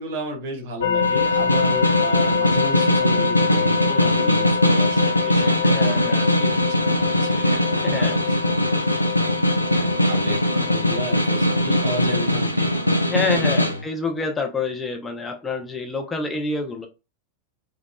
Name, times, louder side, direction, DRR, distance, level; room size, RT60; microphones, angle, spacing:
voice 1, 0.0-6.0 6.4-9.0 9.7-12.7 13.3-13.8, equal, 50° right, 3 dB, 1.4 m, -33 dB
sound 1, 0.8-12.3, left 6 dB, 65° left, 1.3 m, -26 dB
Snare drum, 1.0-13.8, equal, 85° left, 0.5 m, -21 dB
voice 2, 5.6-6.3 7.8-8.2 13.1-16.9, left 4 dB, 15° left, 2 dB, 0.7 m, -27 dB
4.6 x 2.4 x 2.2 m, 0.28 s
figure-of-eight pair, 90°, 0 cm